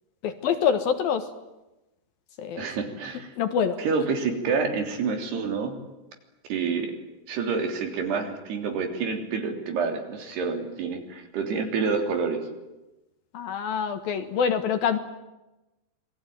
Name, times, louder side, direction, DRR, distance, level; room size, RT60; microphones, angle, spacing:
voice 1, 0.2-1.3 2.4-2.7 3.4-3.8 13.3-15.0, left 7 dB, 65° left, 9 dB, 2.9 m, -25 dB
voice 2, 2.6-3.3 3.8-5.8 6.5-6.9 7.3-12.4, right 5 dB, 65° right, 5 dB, 5.3 m, -28 dB
27.5 x 21.5 x 9.3 m, 1.0 s
omnidirectional pair, 5.0 m